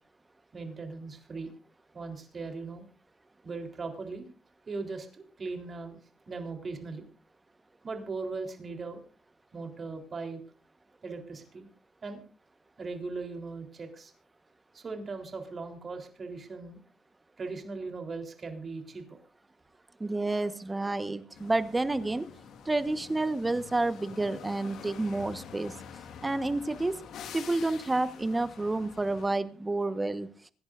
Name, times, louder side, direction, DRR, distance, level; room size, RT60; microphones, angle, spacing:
voice 1, 0.5-1.5 1.9-2.9 3.4-4.3 4.7-6.0 6.3-7.0 7.8-9.0 9.5-10.4 11.0-11.7 12.0-12.2 12.8-14.1 14.7-16.8 17.4-19.2, right 4 dB, 40° right, 5 dB, 3.7 m, -39 dB
voice 2, 20.0-22.3 22.6-25.7 26.2-27.0 27.3-30.3, right 2 dB, 20° right, 11 dB, 1.3 m, -29 dB
sound 1, 21.3-29.3, left 7 dB, 75° left, 1.7 m, -47 dB
26.0 x 11.5 x 2.6 m, 0.36 s
cardioid pair, 90°, 0 cm